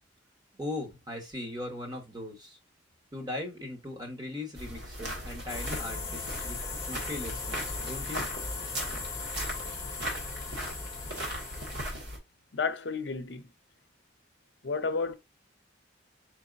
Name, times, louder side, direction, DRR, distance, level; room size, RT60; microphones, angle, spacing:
voice 1, 0.6-2.6 3.1-8.3, left 1 dB, 20° right, 1.3 m, -39 dB
sound 1, 4.5-12.2, equal, 65° right, 1.7 m, -38 dB
sound 2, 5.5-11.9, left 4 dB, 15° left, 1.0 m, -38 dB
voice 2, 12.5-13.5 14.6-15.1, left 4 dB, 65° left, 0.6 m, -31 dB
4.6 x 4.3 x 2.5 m
head